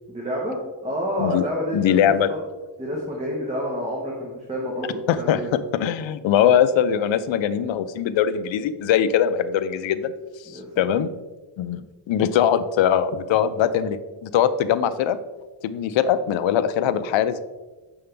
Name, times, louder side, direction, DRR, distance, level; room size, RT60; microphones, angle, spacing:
voice 1, 0.1-0.6 0.8-2.4 2.8-5.5 10.5-10.8, equal, 15° right, -3 dB, 1.3 m, -29 dB
voice 2, 1.7-2.3 5.1-5.4 5.7-10.1 10.4-11.1 11.6-15.2 15.6-17.4, left 9 dB, 70° left, 12 dB, 0.6 m, -21 dB
7.7 x 5.5 x 3.4 m, 1.2 s
cardioid pair, 120°, 48 cm